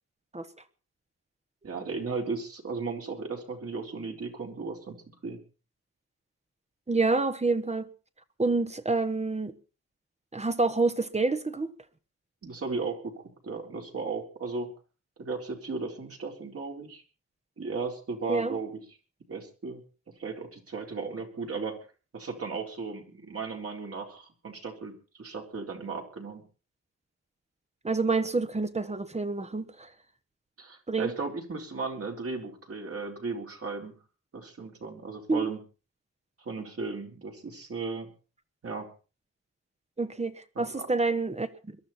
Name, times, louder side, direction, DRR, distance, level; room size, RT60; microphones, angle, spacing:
voice 1, 1.6-5.0 5.2-5.4 12.4-14.7 15.2-17.0 17.6-18.8 19.3-19.8 20.2-21.8 22.1-24.9 25.2-26.4 30.6-34.0 34.3-35.6 36.5-38.1 38.6-38.9 40.5-40.9, right 4 dB, 50° right, 4.1 m, -35 dB
voice 2, 6.9-7.9 8.4-9.5 10.3-11.7 18.3-18.6 27.8-29.9 30.9-31.1 35.3-35.4 40.0-41.8, right 3 dB, 20° right, 1.2 m, -28 dB
22.0 x 13.0 x 4.3 m
wide cardioid pair, 155°, 30 cm